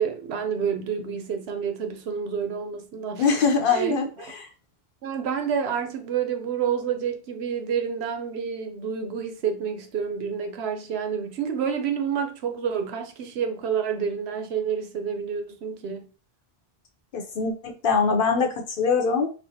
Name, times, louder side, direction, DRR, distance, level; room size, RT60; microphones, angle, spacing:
voice 1, 0.0-3.3 3.7-4.0 5.0-16.1, right 7 dB, 90° right, 0.9 m, -28 dB
voice 2, 3.2-4.1 17.1-19.3, left 5 dB, 60° left, 0.8 m, -23 dB
4.5 x 2.1 x 2.6 m
omnidirectional pair, 1.0 m